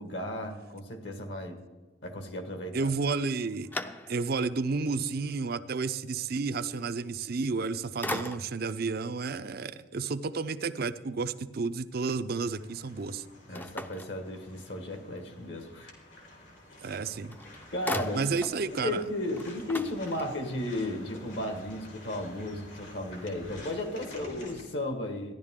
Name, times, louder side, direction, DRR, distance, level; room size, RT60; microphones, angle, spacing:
voice 1, 0.0-1.6 2.0-2.9 13.5-15.9 17.7-18.2 18.7-25.3, left 1 dB, 70° left, 6 dB, 1.5 m, -34 dB
voice 2, 2.7-3.7 4.1-13.2 16.8-17.4 18.1-19.0, right 4 dB, 55° right, 12 dB, 0.5 m, -31 dB
sound 1, 3.1-4.5 5.0-5.1 7.4-7.7 8.0-8.8 13.5-14.8 16.9-17.0 17.3-18.6 19.0-19.1 19.3-20.6, left 1 dB, 10° left, 0.5 m, -38 dB
sound 2, 12.4-24.6, left 1 dB, 85° left, 3.5 m, -50 dB
15.0 x 11.0 x 3.7 m, 1.3 s
head